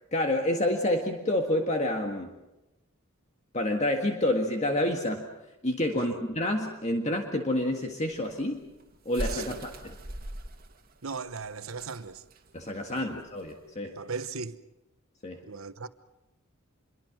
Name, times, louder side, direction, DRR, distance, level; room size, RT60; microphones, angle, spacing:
voice 1, 0.1-2.3 3.5-5.3 5.6-8.6 9.0-10.0 12.5-14.0 15.2-15.4, left 1 dB, 35° left, 1.8 m, -28 dB
sound 1, 8.1-13.7, right 1 dB, 45° right, 2.4 m, -40 dB
voice 2, 9.2-9.6 11.0-12.2 12.9-13.0 13.8-14.6 15.4-15.9, right 5 dB, 75° right, 1.1 m, -38 dB
27.0 x 22.5 x 6.2 m
head